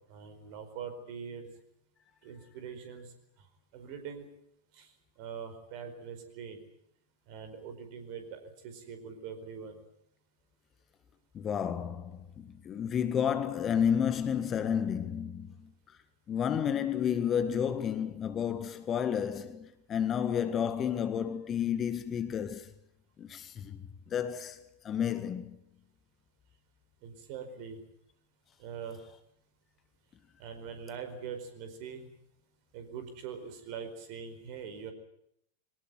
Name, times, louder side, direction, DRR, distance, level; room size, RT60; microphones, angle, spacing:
voice 1, 0.1-1.5 2.2-3.1 3.4-3.5 3.7-4.3 4.7-4.9 5.2-6.6 7.3-9.8 27.0-27.8 28.6-29.0 30.4-32.1 32.7-34.9, right 6 dB, 45° right, 4.7 m, -43 dB
voice 2, 11.3-15.7 16.3-22.7 23.2-25.5, left 8 dB, 25° left, 1.6 m, -31 dB
23.0 x 19.0 x 9.3 m
figure-of-eight pair, 90°, 0 cm